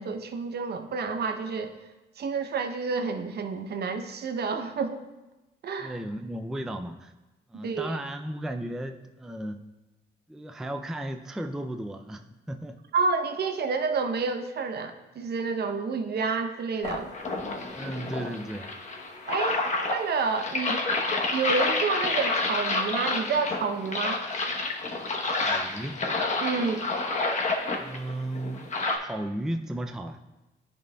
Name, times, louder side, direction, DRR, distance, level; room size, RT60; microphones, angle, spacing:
voice 1, 0.0-1.7 2.2-5.0 5.6-5.9 7.6-8.0 12.9-17.1 19.3-19.6 19.9-20.8 21.3-24.2 26.4-26.9, right 4 dB, 55° right, 7 dB, 0.7 m, -29 dB
voice 2, 5.8-7.1 7.5-9.6 10.3-12.8 17.7-18.8 25.4-26.0 27.8-30.2, right 1 dB, ahead, 6 dB, 0.3 m, -35 dB
sound 1, 16.8-29.0, left 3 dB, 35° left, 0.9 m, -29 dB
10.5 x 5.3 x 2.2 m, 1.1 s
cardioid pair, 90°, 20 cm